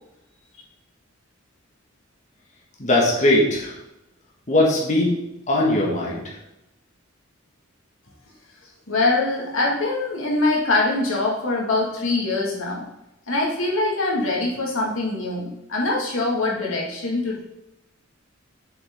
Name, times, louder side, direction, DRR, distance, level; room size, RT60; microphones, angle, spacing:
voice 1, 2.8-3.7 4.5-5.2 5.5-6.2, left 1 dB, 40° left, -3 dB, 1.7 m, -19 dB
voice 2, 8.9-12.8 13.3-17.4, left 2 dB, 80° left, -2 dB, 2.1 m, -23 dB
7.6 x 7.0 x 3.7 m, 0.89 s
head